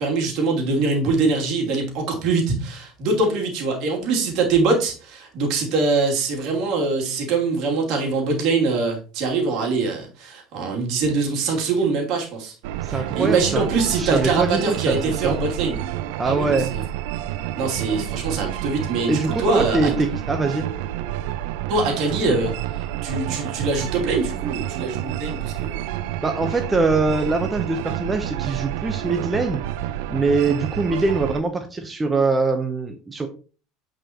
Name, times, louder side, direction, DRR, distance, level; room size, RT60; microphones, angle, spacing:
voice 1, 0.0-12.5 12.9-15.8 16.2-16.8 17.6-19.9 21.7-25.8, right 3 dB, 60° right, 0 dB, 2.8 m, -23 dB
sound 1, 12.6-31.4, right 13 dB, 75° right, 0.5 m, -29 dB
voice 2, 12.8-13.6 14.0-15.4 16.2-16.7 19.1-20.7 26.2-29.6 30.1-33.3, right 3 dB, 15° right, 5 dB, 0.9 m, -23 dB
8.8 x 5.0 x 3.0 m, 0.37 s
supercardioid pair, 110°, 0 cm